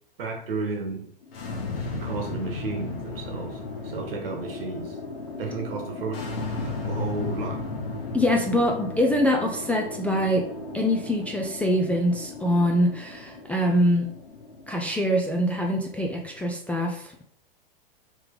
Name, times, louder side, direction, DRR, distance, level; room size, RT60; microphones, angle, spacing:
voice 1, 0.2-1.0 1.5-1.6 1.9-5.0 5.4-7.6, right 3 dB, 70° right, 3 dB, 1.3 m, -33 dB
sound 1, 1.2-16.5, left 3 dB, 75° left, 1.1 m, -36 dB
voice 2, 8.1-10.5 10.7-14.1 14.7-17.1, equal, 5° left, 0 dB, 0.3 m, -24 dB
3.5 x 3.2 x 3.6 m, 0.65 s
hypercardioid pair, 105°, 30 cm